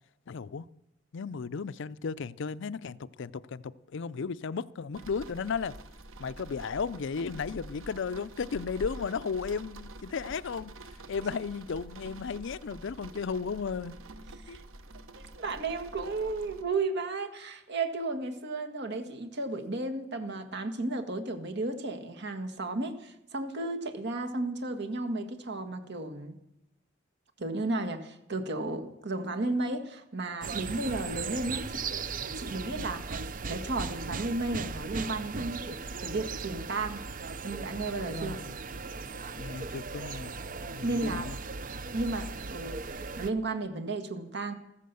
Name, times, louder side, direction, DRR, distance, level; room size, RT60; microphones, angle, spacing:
voice 1, 0.3-0.7 1.1-5.7 6.2-10.7 11.1-13.9 14.5-14.6 38.1-38.6 39.4-40.3 40.7-41.4, left 5 dB, 65° left, 0.5 m, -35 dB
sound 1, 4.9-16.6, right 2 dB, 85° right, 1.1 m, -47 dB
voice 2, 15.2-26.4 27.4-31.8 32.3-37.0 37.4-38.4 40.8-41.3 41.9-44.5, right 2 dB, 60° right, 1.8 m, -34 dB
sound 2, 30.4-43.3, right 4 dB, 45° right, 0.6 m, -38 dB
14.5 x 14.0 x 6.9 m
head